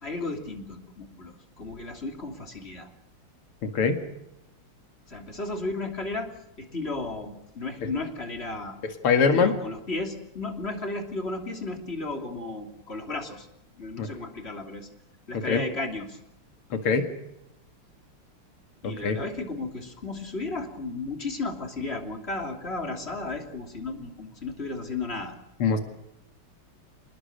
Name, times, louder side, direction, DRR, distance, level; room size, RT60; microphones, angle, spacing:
voice 1, 0.0-2.9 5.1-8.8 9.3-13.5 13.8-14.9 15.3-16.2 18.8-25.4, left 3 dB, 25° left, 4 dB, 3.2 m, -34 dB
voice 2, 3.6-4.0 9.0-9.5 14.0-14.1 15.5-15.6 16.7-17.1 19.0-19.2 25.6-25.8, left 5 dB, 80° left, 7 dB, 2.9 m, -22 dB
27.0 x 20.5 x 6.7 m, 0.86 s
omnidirectional pair, 2.4 m